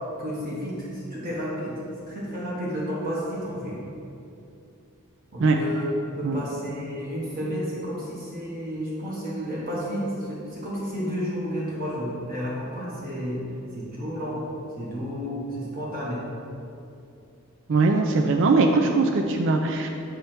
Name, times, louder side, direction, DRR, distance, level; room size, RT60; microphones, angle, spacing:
voice 1, 0.2-1.8 2.1-3.8 5.3-5.9 6.2-13.4 13.7-14.4 14.8-16.2, equal, 40° right, -6 dB, 1.3 m, -31 dB
voice 2, 17.7-19.9, right 3 dB, 60° right, 2 dB, 0.4 m, -21 dB
8.2 x 3.3 x 5.9 m, 2.7 s
head